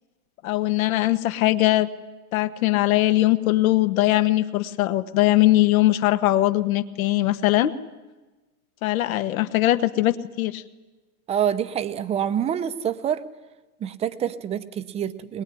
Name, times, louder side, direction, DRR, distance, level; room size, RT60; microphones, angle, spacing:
voice 1, 0.4-1.9 2.3-7.7 8.8-10.6, left 16 dB, 65° left, 11 dB, 1.5 m, -21 dB
voice 2, 11.3-13.2 13.8-15.4, right 9 dB, 15° right, 11 dB, 0.7 m, -26 dB
22.0 x 21.5 x 10.0 m, 1.2 s
supercardioid pair, 160°, 44 cm